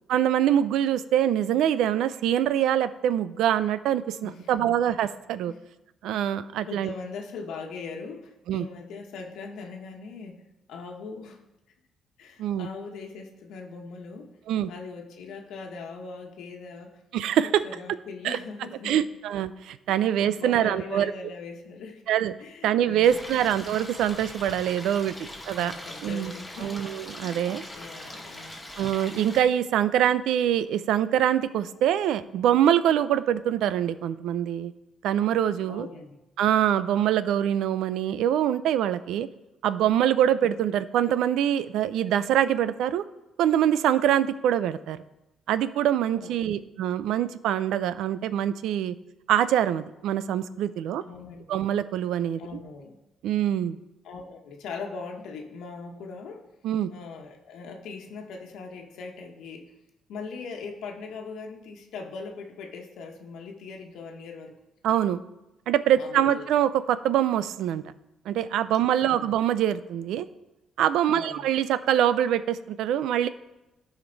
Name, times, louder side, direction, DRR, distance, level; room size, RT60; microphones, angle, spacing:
voice 1, 0.1-5.5 6.0-6.9 8.5-8.7 12.4-12.7 14.5-14.7 17.1-17.5 18.2-18.4 18.8-21.1 22.1-22.3 22.6-25.7 26.0-26.3 26.6-27.6 28.8-34.7 35.0-35.9 36.4-39.3 39.6-43.0 43.4-45.0 45.5-48.9 49.3-51.0 51.5-52.4 53.2-53.8 56.6-56.9 64.8-65.2 65.7-67.8 68.3-70.3 70.8-73.3, right 10 dB, 85° right, 14 dB, 0.4 m, -24 dB
voice 2, 4.2-4.7 5.5-5.6 6.6-10.4 10.7-11.4 12.2-14.3 14.7-17.0 17.6-19.0 19.9-20.0 20.4-22.0 22.4-23.4 25.6-26.8 27.1-28.6 35.7-36.2 46.2-46.7 51.0-51.6 52.4-53.0 54.0-56.4 56.9-59.6 60.1-64.5 65.9-66.5 69.0-69.3 71.1-71.5, left 4 dB, 85° left, 1 dB, 1.2 m, -40 dB
Stream, 23.0-29.4, left 1 dB, 10° left, 1.9 m, -41 dB
13.5 x 5.1 x 4.0 m, 0.96 s
cardioid pair, 90°, 0 cm